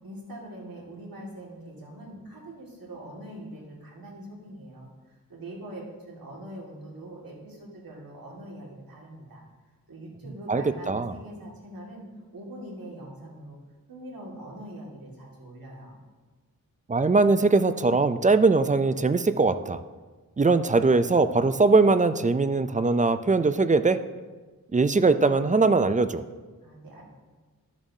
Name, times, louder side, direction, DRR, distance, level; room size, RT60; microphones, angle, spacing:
voice 1, 0.0-9.4 9.9-12.0 12.3-13.6 13.9-15.9 26.6-27.0, right 1 dB, 80° right, -3 dB, 2.0 m, -43 dB
voice 2, 10.5-11.1 16.9-19.8 20.4-24.0 24.7-26.2, right 3 dB, 25° right, 12 dB, 0.3 m, -21 dB
12.0 x 7.2 x 2.7 m, 1.3 s
wide cardioid pair, 75°, 34 cm